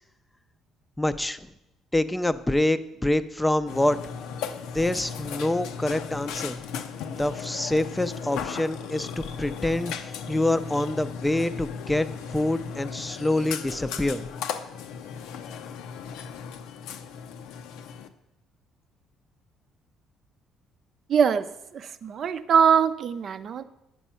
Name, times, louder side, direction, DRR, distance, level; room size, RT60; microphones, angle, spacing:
voice 1, 1.0-1.5 1.9-4.0 4.7-6.6 7.1-14.2, left 1 dB, 10° left, 12 dB, 0.5 m, -26 dB
Burping eructation, 3.7-18.1, left 7 dB, 85° left, 0.6 m, -36 dB
voice 2, 21.1-21.4 21.7-23.6, right 7 dB, 55° right, 11 dB, 0.6 m, -22 dB
9.0 x 6.2 x 5.6 m, 0.88 s
cardioid pair, 90°, 0 cm